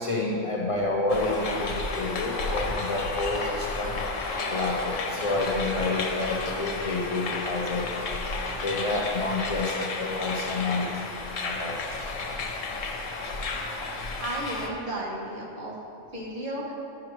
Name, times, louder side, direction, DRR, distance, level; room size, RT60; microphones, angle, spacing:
voice 1, 0.0-4.0 4.5-7.9 8.6-11.0 11.4-12.1, left 2 dB, 45° left, -2 dB, 0.4 m, -29 dB
sound 1, 1.1-14.7, left 3 dB, 85° left, 1.1 m, -32 dB
voice 2, 14.2-15.7 16.1-16.7, right 1 dB, 40° right, -4 dB, 1.2 m, -33 dB
9.5 x 6.0 x 3.1 m, 2.9 s
omnidirectional pair, 1.3 m